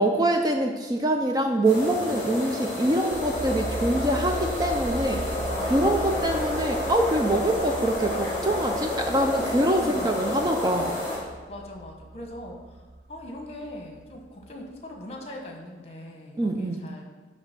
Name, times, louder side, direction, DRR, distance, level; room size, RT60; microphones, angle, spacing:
voice 1, 0.0-5.2 5.7-10.9 16.4-16.8, right 1 dB, 20° right, 3 dB, 0.4 m, -24 dB
sound 1, 1.6-11.2, left 1 dB, 15° left, 2.7 m, -30 dB
sound 2, 3.1-14.5 14.8-14.9, right 1 dB, 65° right, 0.7 m, -38 dB
voice 2, 5.5-6.4 9.7-10.5 11.5-12.8 13.1-17.0, left 1 dB, 35° left, 1 dB, 1.1 m, -41 dB
9.8 x 3.3 x 5.9 m, 1.3 s
head